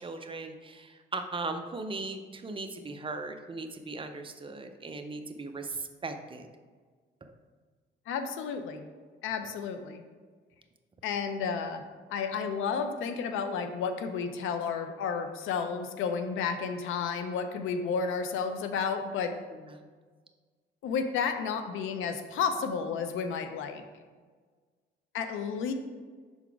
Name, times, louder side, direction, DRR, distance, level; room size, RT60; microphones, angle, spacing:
voice 1, 0.0-6.5 7.2-7.3 19.6-19.8, right 3 dB, 25° right, 6 dB, 0.6 m, -38 dB
voice 2, 8.1-8.9 9.2-10.0 11.0-11.8 12.1-19.4 20.8-23.8 25.1-25.7, left 6 dB, 85° left, 8 dB, 0.6 m, -32 dB
5.8 x 4.0 x 4.6 m, 1.5 s
cardioid pair, 90°, 20 cm